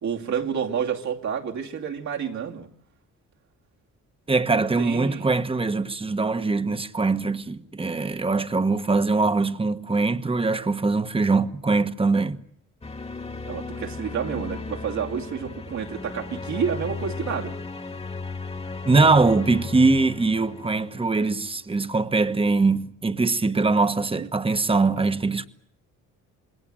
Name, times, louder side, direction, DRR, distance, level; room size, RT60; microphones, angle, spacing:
voice 1, 0.0-2.7 4.4-5.3 13.4-17.5 24.2-24.3, right 7 dB, 65° right, 2.6 m, -29 dB
voice 2, 4.3-12.4 18.8-25.5, right 3 dB, 20° right, 1.2 m, -22 dB
sound 1, 12.8-21.6, left 3 dB, 20° left, 1.7 m, -36 dB
27.0 x 21.0 x 7.7 m
cardioid pair, 90°, 30 cm